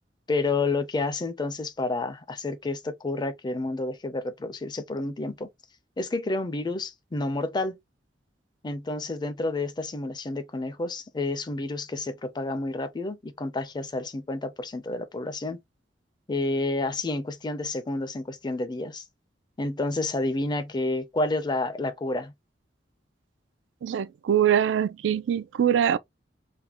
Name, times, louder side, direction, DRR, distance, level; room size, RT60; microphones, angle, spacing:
voice 1, 0.3-5.5 6.0-7.8 8.6-15.6 16.3-19.0 19.6-22.3, left 2 dB, 25° left, 0.4 m, -30 dB
voice 2, 23.8-26.0, right 9 dB, 80° right, 0.3 m, -23 dB
3.5 x 2.1 x 2.8 m
head